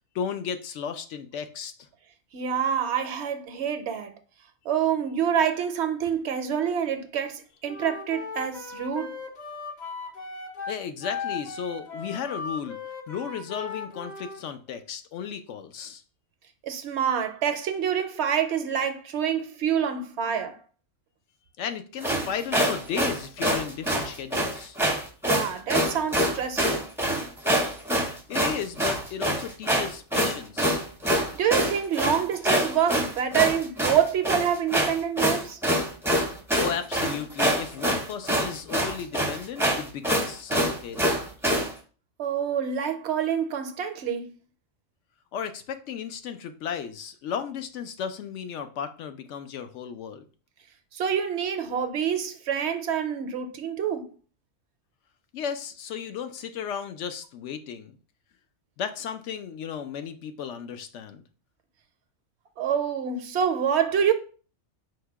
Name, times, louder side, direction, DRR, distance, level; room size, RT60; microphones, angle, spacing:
voice 1, 0.1-1.9 10.7-12.8 13.1-16.0 21.6-24.8 28.3-30.9 36.5-41.2 45.3-50.2 55.3-58.0 58.8-61.2, left 7 dB, 75° left, 0.9 m, -34 dB
voice 2, 2.3-4.1 4.7-9.1 16.6-20.6 25.3-26.9 31.3-35.6 42.2-44.3 50.9-54.1 62.6-64.1, right 8 dB, 70° right, 0.8 m, -26 dB
Wind instrument woodwind instrument, 7.7-14.4, left 5 dB, 45° left, 0.7 m, -37 dB
sound 1, 22.0-41.7, equal, 5° right, 0.5 m, -25 dB
4.8 x 2.2 x 4.5 m
omnidirectional pair, 1.3 m